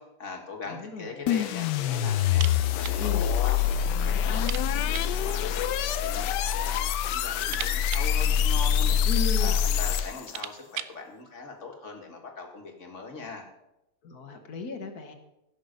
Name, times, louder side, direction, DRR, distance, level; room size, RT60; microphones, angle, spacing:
voice 1, 0.0-9.0 9.4-13.4, left 4 dB, 45° left, 2 dB, 2.1 m, -41 dB
voice 2, 0.7-1.5 3.0-3.3 9.1-9.6 14.0-15.1, left 3 dB, 65° left, 6 dB, 1.7 m, -36 dB
sound 1, 1.3-10.4, left 9 dB, 90° left, 1.3 m, -25 dB
sound 2, 2.3-3.0 3.3-3.4 3.8-3.9 4.3-5.2 6.2-6.7 7.1-9.1 9.7-9.8 10.1-11.0, right 11 dB, 70° right, 0.8 m, -40 dB
16.0 x 6.3 x 5.3 m, 0.91 s
omnidirectional pair, 1.8 m